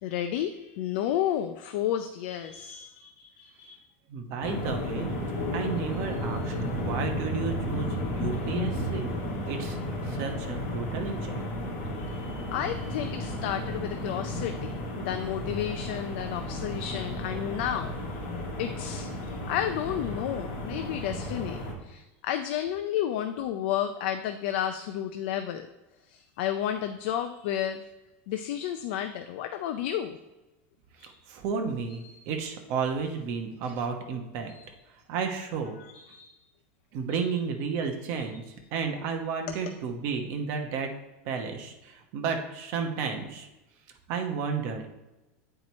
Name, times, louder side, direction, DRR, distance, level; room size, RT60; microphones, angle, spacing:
voice 1, 0.0-3.8 6.1-6.9 12.0-17.9 18.6-19.1 19.5-25.7 26.0-27.8 28.3-30.2 31.0-31.2 32.0-32.3 34.5-34.6 35.8-36.4 37.1-37.2, left 10 dB, 55° left, 7 dB, 0.4 m, -32 dB
voice 2, 4.1-5.1 5.5-7.9 8.1-9.1 9.5-9.8 10.1-11.4 31.0-34.5 35.1-35.8 36.9-38.4 38.7-40.9 41.2-43.5 44.1-44.9, right 5 dB, 40° right, 4 dB, 1.0 m, -32 dB
sound 1, 4.4-21.7, left 1 dB, 40° left, 2.0 m, -33 dB
8.8 x 4.6 x 4.2 m, 1.0 s
supercardioid pair, 175°, 7 cm